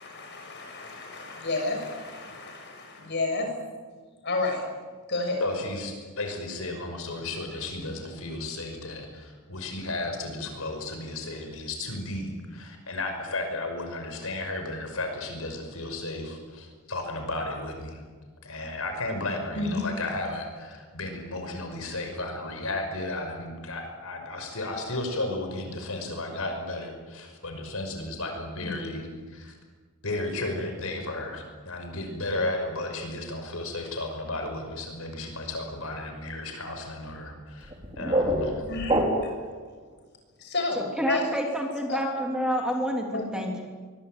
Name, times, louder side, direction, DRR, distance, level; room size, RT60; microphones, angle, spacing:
voice 1, 0.0-3.5 4.2-4.6 5.1-5.4 19.6-19.9 28.6-28.7 38.7-39.0 40.4-41.3 41.9-42.0 43.1-43.2, left 2 dB, 50° left, 3 dB, 6.9 m, -30 dB
voice 2, 5.4-18.0 18.4-29.5 30.0-38.6, left 2 dB, 70° left, 5 dB, 5.8 m, -34 dB
sound 1, 37.6-39.5, right 1 dB, 25° right, 4.1 m, -26 dB
voice 3, 41.0-43.1 43.3-43.7, equal, 5° right, 1 dB, 3.2 m, -28 dB
24.0 x 23.0 x 9.1 m, 1.5 s
head